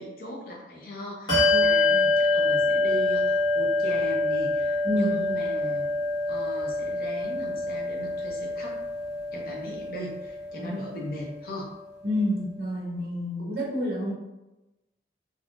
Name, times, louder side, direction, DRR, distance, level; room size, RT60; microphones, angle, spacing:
voice 1, 0.0-5.9 6.3-8.8 9.3-11.7, equal, 55° left, -1 dB, 0.7 m, -38 dB
Bell, 1.3-11.3, left 2 dB, 25° left, 1.4 m, -26 dB
voice 2, 12.0-14.1, left 1 dB, 55° right, -4 dB, 0.9 m, -29 dB
3.5 x 2.6 x 2.5 m, 1.0 s
head